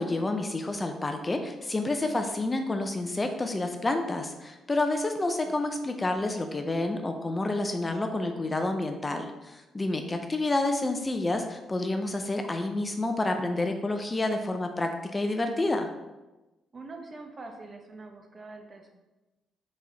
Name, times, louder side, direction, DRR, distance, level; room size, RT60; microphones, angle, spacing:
voice 1, 0.0-15.9, left 2 dB, 20° left, 5 dB, 0.4 m, -29 dB
voice 2, 16.7-18.9, right 3 dB, 35° right, 4 dB, 0.7 m, -44 dB
4.7 x 4.0 x 2.8 m, 1.1 s
cardioid pair, 90°, 0 cm